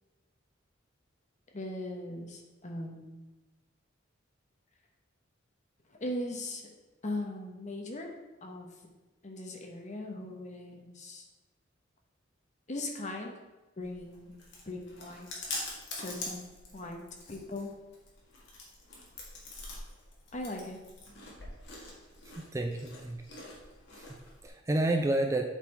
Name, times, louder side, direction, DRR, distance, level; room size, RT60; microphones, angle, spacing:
voice 1, 1.5-3.2 5.9-6.6 7.0-8.1 8.4-8.7 9.2-11.2 12.7-13.3 13.8-14.4 14.7-15.3 15.9-16.4 16.7-17.0 17.3-17.7 20.3-20.8, left 1 dB, 40° left, 2 dB, 1.1 m, -39 dB
Chewing mastication, 13.8-24.5, left 2 dB, 60° left, 1.8 m, -45 dB
voice 2, 22.2-23.2 23.9-25.4, right 1 dB, 15° right, 4 dB, 0.4 m, -31 dB
8.2 x 4.1 x 4.3 m, 1.1 s
head